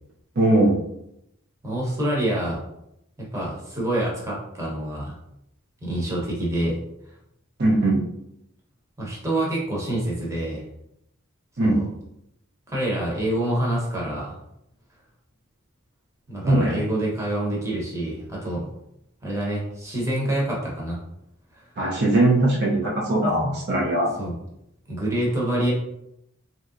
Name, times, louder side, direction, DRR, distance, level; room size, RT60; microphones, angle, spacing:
voice 1, 0.4-0.8 7.6-8.0 11.6-11.8 16.4-16.8 21.8-24.1, right 1 dB, 50° right, -3 dB, 0.6 m, -20 dB
voice 2, 1.6-2.6 3.3-5.1 5.8-6.8 9.0-10.6 11.6-11.8 12.7-14.4 16.3-18.7 19.2-21.0 21.6-21.7 24.2-24.3 24.9-25.7, right 1 dB, 15° right, -4 dB, 0.9 m, -26 dB
3.2 x 2.8 x 2.5 m, 0.79 s
head